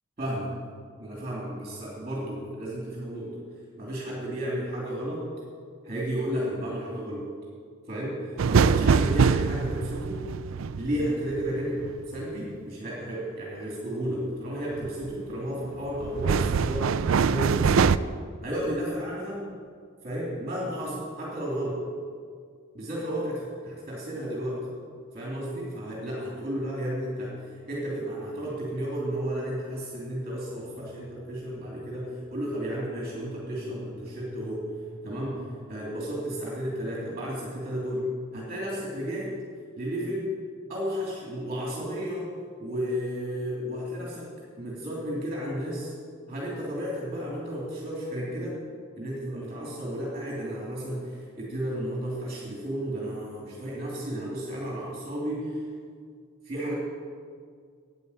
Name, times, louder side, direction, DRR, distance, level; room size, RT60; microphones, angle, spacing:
voice 1, 0.2-0.5 1.0-3.3 3.8-5.3 5.8-7.2 7.9-10.2 10.8-18.0 18.4-19.4 20.0-21.8 22.7-24.6 25.1-34.7 35.0-38.1 38.3-39.3 39.8-40.3 40.7-42.3 42.6-44.3 44.6-45.9 46.3-48.5 49.0-55.6 56.4-56.7, equal, 30° right, -5 dB, 2.9 m, -33 dB
sound 1, 8.4-12.2 14.8-15.2 15.7-18.0, right 6 dB, 65° right, 0.4 m, -24 dB
sound 2, 30.4-38.2, left 2 dB, 5° left, 1.2 m, -48 dB
11.0 x 8.9 x 8.5 m, 2.1 s
head